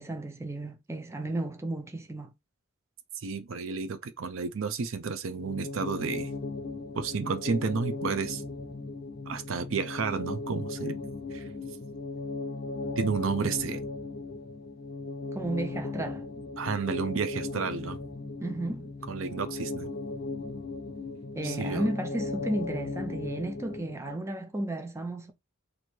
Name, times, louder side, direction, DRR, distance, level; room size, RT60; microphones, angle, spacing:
voice 1, 0.0-2.3 15.3-16.3 18.4-18.9 21.3-25.3, right 1 dB, 15° right, 0.6 m, -33 dB
voice 2, 3.2-6.3 6.9-8.4 9.3-11.0 11.3-11.5 13.0-13.8 16.6-18.0 19.1-19.9 21.4-21.9, right 5 dB, 70° right, 0.5 m, -31 dB
sound 1, 5.3-24.2, left 3 dB, 50° left, 0.5 m, -37 dB
3.1 x 2.7 x 4.3 m
head